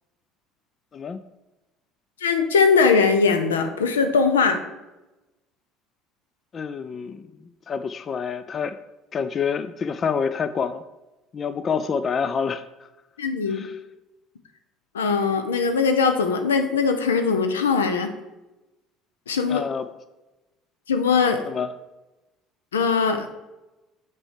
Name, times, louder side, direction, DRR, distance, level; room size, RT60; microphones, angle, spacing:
voice 1, 2.2-4.6 13.2-13.7 14.9-18.1 19.3-19.6 20.9-21.5 22.7-23.3, left 5 dB, 85° left, 7 dB, 0.6 m, -20 dB
voice 2, 6.5-7.3 7.7-8.8 9.1-10.8 11.3-12.6 13.5-13.8 19.5-19.9 21.5-21.7, left 6 dB, 40° left, 12 dB, 0.3 m, -27 dB
6.1 x 4.5 x 4.9 m, 1.0 s
hypercardioid pair, 65°, 0 cm